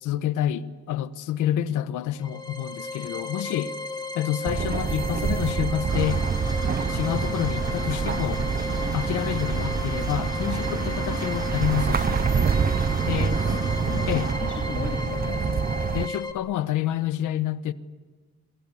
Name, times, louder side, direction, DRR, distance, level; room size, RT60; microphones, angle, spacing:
voice 1, 0.0-3.7 4.1-6.2 6.9-8.5 8.9-12.3 13.1-13.4 14.1-14.3 15.9-17.7, left 11 dB, 90° left, 1.2 m, -28 dB
sound 1, 2.1-16.3, left 3 dB, 15° left, 2.8 m, -35 dB
sound 2, 4.5-16.1, right 6 dB, 30° right, 0.7 m, -27 dB
Engine, 5.9-14.3, right 1 dB, 15° right, 6.6 m, -35 dB
voice 2, 13.4-15.5, left 5 dB, 40° left, 2.9 m, -36 dB
26.5 x 22.5 x 8.5 m
cardioid pair, 90°, 30 cm